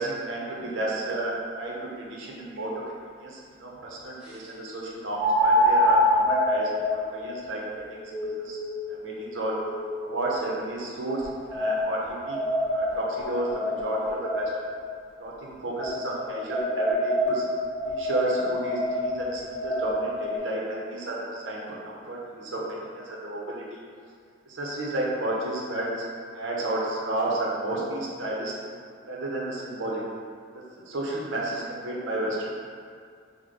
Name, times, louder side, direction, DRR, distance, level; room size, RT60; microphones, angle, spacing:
voice 1, 0.0-8.6 8.9-9.6 10.0-12.4 12.7-14.7 15.2-17.4 17.8-21.6 21.8-23.8 24.5-26.0 26.3-28.5 29.1-30.0 30.5-32.5, right 1 dB, 75° right, -4 dB, 0.7 m, -32 dB
sound 1, 2.6-2.7 5.2-10.3 11.1-14.8 15.8-20.4, left 1 dB, 5° right, 0.6 m, -26 dB
4.9 x 2.1 x 3.7 m, 2.2 s
head